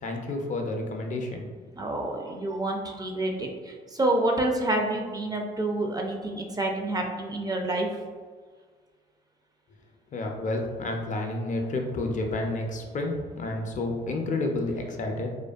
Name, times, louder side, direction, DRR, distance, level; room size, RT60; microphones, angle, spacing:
voice 1, 0.0-1.5 10.1-15.3, left 2 dB, 40° left, 2 dB, 0.4 m, -30 dB
voice 2, 1.8-8.0, right 2 dB, 20° right, 1 dB, 0.4 m, -28 dB
2.5 x 2.2 x 2.3 m, 1.5 s
supercardioid pair, 70°, 19 cm